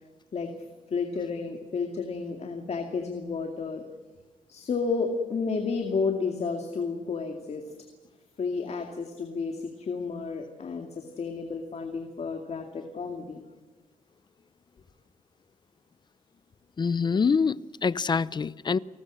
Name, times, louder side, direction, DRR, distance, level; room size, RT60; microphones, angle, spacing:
voice 1, 0.9-3.8 4.5-7.6 8.4-13.4, left 4 dB, 50° left, 2.4 m, -31 dB
voice 2, 16.8-18.8, left 5 dB, 30° left, 0.6 m, -25 dB
29.5 x 19.5 x 6.4 m
cardioid pair, 115°, 14 cm